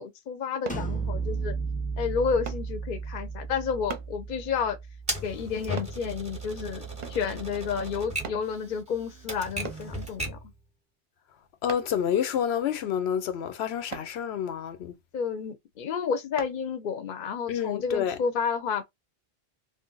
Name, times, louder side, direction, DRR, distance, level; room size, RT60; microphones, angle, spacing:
voice 1, 0.0-1.5 2.0-4.8 5.2-6.8 7.1-10.4 15.1-18.8, left 6 dB, 60° left, 0.7 m, -30 dB
sound 1, 0.7-6.3, right 4 dB, 10° left, 0.4 m, -34 dB
sound 2, 0.7-0.9 2.5-2.7 3.9-4.1 5.8-6.0 7.0-7.3 8.2-8.5 9.6-9.9 11.7-12.0 13.9-14.1 16.4-16.6 17.1-17.3, right 6 dB, 50° right, 0.6 m, -39 dB
Typewriter, 5.1-10.5, right 1 dB, 10° right, 0.7 m, -36 dB
voice 2, 11.6-14.9 17.5-18.2, left 9 dB, 90° left, 0.9 m, -28 dB
2.6 x 2.1 x 3.7 m
omnidirectional pair, 1.0 m